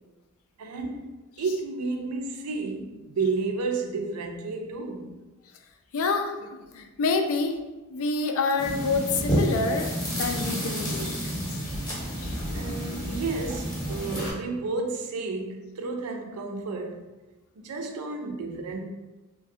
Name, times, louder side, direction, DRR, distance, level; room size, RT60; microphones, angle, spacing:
voice 1, 0.6-5.2 12.5-17.1 17.6-18.9, right 3 dB, 85° right, 0.4 m, -32 dB
voice 2, 5.9-7.6 7.9-11.8 12.2-12.7, left 3 dB, 70° left, 0.3 m, -28 dB
sound 1, 8.6-14.3, equal, 20° left, 0.7 m, -30 dB
3.1 x 2.2 x 2.7 m
head